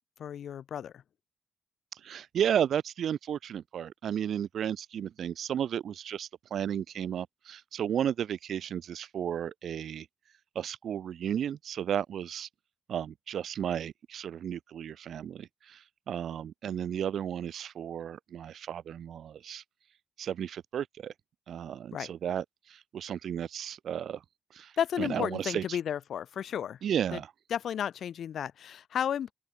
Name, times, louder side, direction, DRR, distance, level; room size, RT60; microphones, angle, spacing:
voice 1, 0.2-1.0 21.9-22.1 24.8-26.8 27.1-27.2 27.5-29.3, left 9 dB, 85° left, 2.3 m, -33 dB
voice 2, 1.9-10.1 10.5-12.5 12.9-19.6 20.2-21.1 21.5-24.2 24.5-24.7 25.0-25.8 26.8-27.3, right 9 dB, 85° right, 0.9 m, -33 dB
open air
wide cardioid pair, 120°, 0 cm